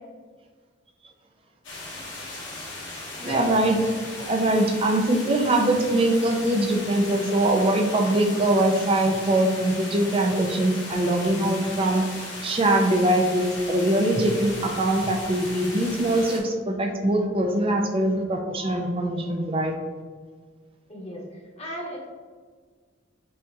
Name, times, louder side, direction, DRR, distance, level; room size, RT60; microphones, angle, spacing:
sound 1, 1.6-16.4, left 2 dB, 75° left, 1.1 m, -37 dB
voice 1, 3.2-3.8 4.2-12.0 12.4-19.7, right 1 dB, 30° right, 3 dB, 0.4 m, -22 dB
voice 2, 20.9-22.1, equal, 35° left, -4 dB, 1.1 m, -36 dB
6.1 x 2.9 x 2.3 m, 1.5 s
head